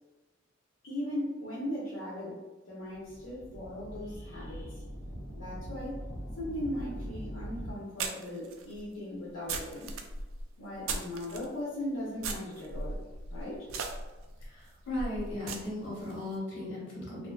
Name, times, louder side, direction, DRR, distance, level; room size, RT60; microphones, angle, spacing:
voice 1, 0.8-2.4 2.7-4.8 5.3-6.0 6.4-9.9 10.6-13.0 13.3-13.7, left 1 dB, 85° left, -8 dB, 0.7 m, -38 dB
sound 1, 2.9-7.7, equal, 45° left, 0.7 m, -42 dB
sound 2, 6.9-7.0 8.0-11.5 12.2-16.2, right 3 dB, 80° right, 0.3 m, -38 dB
voice 2, 14.4-17.3, left 1 dB, 65° left, -6 dB, 1.1 m, -37 dB
2.5 x 2.4 x 2.2 m, 1.1 s
head